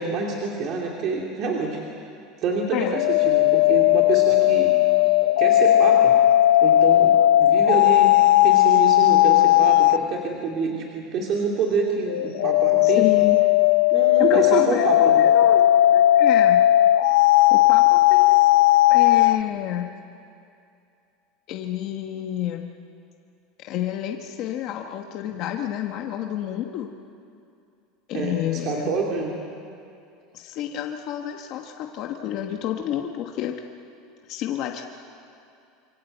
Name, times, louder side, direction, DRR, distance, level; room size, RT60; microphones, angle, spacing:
voice 1, 0.0-1.8 2.4-4.8 5.4-6.1 6.6-8.1 8.4-13.1 13.9-15.1 28.1-29.4, right 4 dB, 35° right, -1 dB, 2.6 m, -27 dB
sound 1, 2.7-10.1 12.1-19.4, left 14 dB, 85° left, 0.5 m, -17 dB
voice 2, 12.8-13.4 14.3-15.6 15.9-16.6 17.5-18.4 18.9-19.9 21.5-22.7 23.6-26.9 28.1-28.9 30.3-33.6 34.3-34.9, left 11 dB, 40° left, 3 dB, 1.3 m, -29 dB
27.0 x 23.5 x 8.0 m, 2.5 s
supercardioid pair, 180°, 0 cm